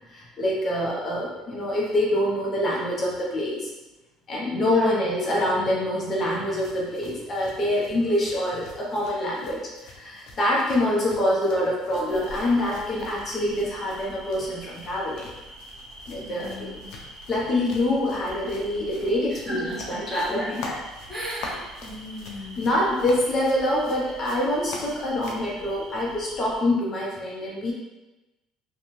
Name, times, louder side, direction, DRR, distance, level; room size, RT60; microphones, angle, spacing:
voice 1, 0.1-3.7 4.3-15.3 16.1-16.7 17.3-20.6 22.6-27.7, left 1 dB, 40° left, -4 dB, 0.8 m, -25 dB
voice 2, 4.6-4.9 16.1-16.9 19.3-20.8 21.1-22.7, right 1 dB, 15° right, -7 dB, 1.1 m, -35 dB
sound 1, 6.3-25.5, left 2 dB, 75° left, 0.5 m, -45 dB
sound 2, 12.1-26.6, right 1 dB, 70° right, 0.7 m, -45 dB
2.6 x 2.3 x 3.1 m, 1.1 s
supercardioid pair, 100°, 0 cm